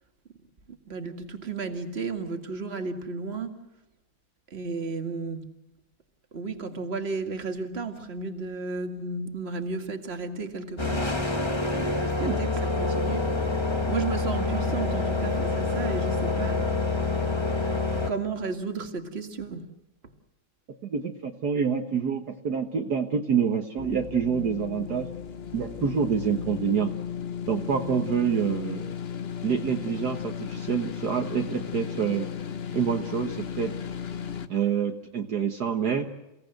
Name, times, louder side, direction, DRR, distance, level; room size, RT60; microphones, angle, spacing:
voice 1, 0.7-3.6 4.5-5.6 6.3-11.1 11.7-13.6 13.9-16.7 18.1-19.7, right 4 dB, 35° right, 5 dB, 2.2 m, -33 dB
sound 1, 10.8-18.1, left 3 dB, 15° left, 1.8 m, -27 dB
voice 2, 20.8-25.1 25.5-26.9 27.5-28.9 29.4-32.3 32.7-33.7 34.5-36.1, right 7 dB, 60° right, 3 dB, 1.8 m, -27 dB
sound 2, 23.8-34.5, left 8 dB, 40° left, 1.0 m, -35 dB
30.0 x 17.5 x 7.9 m, 0.99 s
omnidirectional pair, 2.1 m